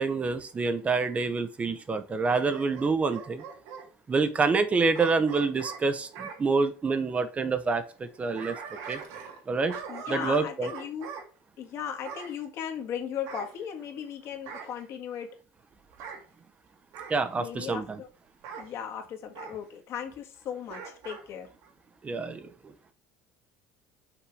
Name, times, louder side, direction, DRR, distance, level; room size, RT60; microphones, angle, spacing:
voice 1, 0.0-3.4 4.1-8.6 8.9-9.0 9.5-9.8 10.1-10.7 17.1-18.0 22.0-22.5, right 4 dB, 25° right, 0.8 m, -27 dB
Bark / Growling, 2.2-3.9 4.9-6.4 8.0-9.4 9.7-11.3 12.0-12.4 13.3-14.1 14.5-14.8 15.9-16.2 16.9-17.2 18.4-18.7 19.3-19.6 20.7-21.2 21.6-21.7, right 6 dB, 70° right, 2.4 m, -41 dB
voice 2, 9.9-11.1 11.6-15.4 17.4-18.1 18.5-21.5, left 8 dB, 55° left, 1.7 m, -37 dB
6.0 x 5.6 x 4.8 m
supercardioid pair, 120°, 6 cm